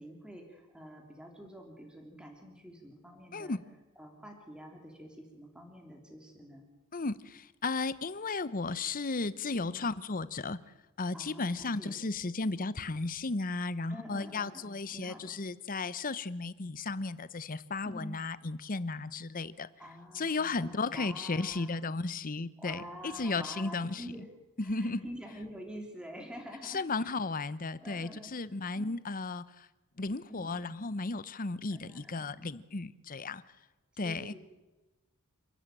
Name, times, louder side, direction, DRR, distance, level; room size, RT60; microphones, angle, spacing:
voice 1, 0.0-3.6 4.0-6.6 9.6-9.9 11.1-12.0 13.9-15.4 17.8-18.2 19.8-21.9 22.6-24.3 24.6-27.1 27.8-28.3 28.7-28.9 30.3-30.5 31.7-32.4 34.0-34.4, equal, 5° right, 2 dB, 3.2 m, -47 dB
voice 2, 3.3-3.6 6.9-10.6 11.0-19.7 20.1-24.0 24.6-25.1 26.6-29.7 30.0-33.4 34.0-34.3, left 3 dB, 40° left, 16 dB, 0.8 m, -34 dB
29.0 x 13.0 x 9.1 m, 1.1 s
head